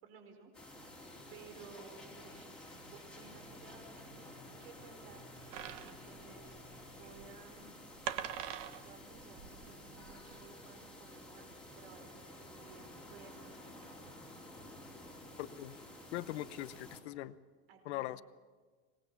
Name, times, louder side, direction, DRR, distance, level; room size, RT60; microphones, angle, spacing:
voice 1, 0.0-4.3 4.6-5.8 6.0-7.9 8.8-14.1 17.7-18.2, right 5 dB, 65° right, 5 dB, 4.9 m, -57 dB
sound 1, 0.5-17.0, left 1 dB, 5° left, 2.8 m, -52 dB
sound 2, 5.5-10.4, right 10 dB, 45° right, 1.1 m, -44 dB
voice 2, 15.4-15.8 16.1-17.4 17.8-18.2, left 15 dB, 80° left, 15 dB, 0.9 m, -41 dB
25.5 x 20.0 x 7.1 m, 1.5 s
supercardioid pair, 170°, 32 cm